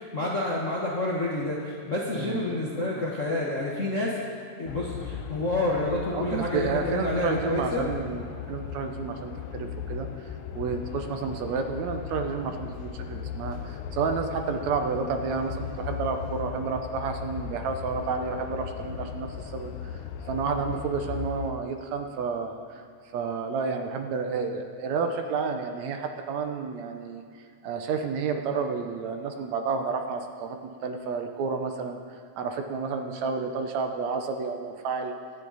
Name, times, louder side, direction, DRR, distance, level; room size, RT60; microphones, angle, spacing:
voice 1, 0.0-4.1 4.6-7.8, left 2 dB, 50° left, -5 dB, 0.9 m, -28 dB
sound 1, 4.7-21.5, left 8 dB, 75° left, 1.8 m, -37 dB
voice 2, 6.1-10.3 10.6-19.9 20.3-22.5 23.1-27.2 27.6-30.6 30.8-32.0 32.4-35.1, right 5 dB, 75° right, 5 dB, 2.1 m, -30 dB
23.0 x 8.9 x 4.1 m, 2.1 s
omnidirectional pair, 3.4 m